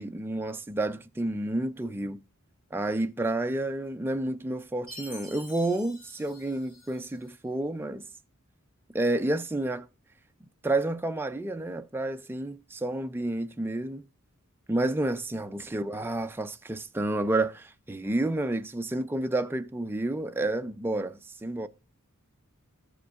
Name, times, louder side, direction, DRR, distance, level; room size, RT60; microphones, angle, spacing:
voice 1, 0.0-2.2 2.7-8.0 8.9-9.9 10.6-14.0 14.7-21.7, right 2 dB, 10° right, 0.3 m, -30 dB
Chime, 4.9-7.3, left 1 dB, 40° left, 2.7 m, -47 dB
14.0 x 5.0 x 2.3 m
head